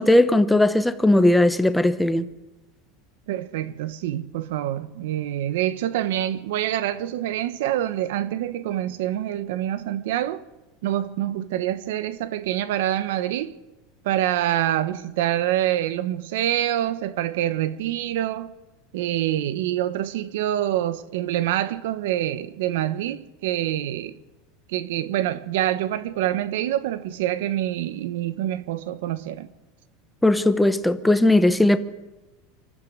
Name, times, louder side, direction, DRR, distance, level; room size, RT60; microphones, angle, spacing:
voice 1, 0.0-2.3 30.2-31.8, left 1 dB, 5° left, 0.9 m, -18 dB
voice 2, 3.3-10.4 10.8-13.5 14.0-18.5 18.9-24.2 24.7-29.5, right 12 dB, 70° right, 1.3 m, -26 dB
25.0 x 13.5 x 8.1 m
supercardioid pair, 175°, 0 cm